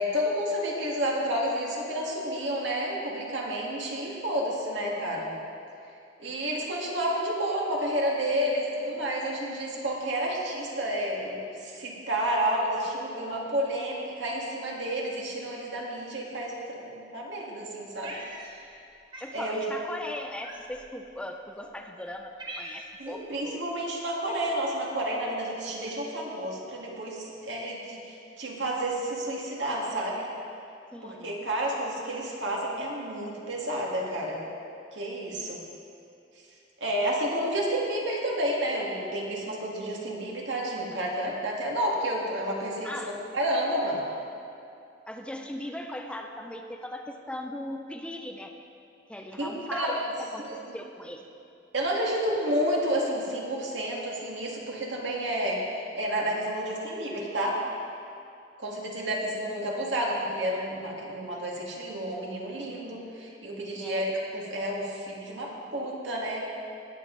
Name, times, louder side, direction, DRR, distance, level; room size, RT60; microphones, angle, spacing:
voice 1, 0.0-5.3 6.2-18.1 19.3-19.6 21.6-21.7 23.0-30.3 31.0-34.4 34.9-35.6 36.8-44.0 49.4-50.1 50.4-50.7 51.7-57.6 58.6-64.1 64.3-66.4, right 1 dB, 75° right, -3 dB, 2.0 m, -30 dB
Cat, 18.0-18.8 19.1-19.4 20.4-20.9 21.6-21.7 22.1-23.1, right 2 dB, 25° right, 1.2 m, -42 dB
voice 2, 19.2-23.7 30.9-31.4 42.8-43.2 45.1-48.5 49.1-51.2 63.8-64.1, left 1 dB, 5° left, 4 dB, 0.5 m, -39 dB
18.0 x 7.5 x 3.9 m, 2.6 s
head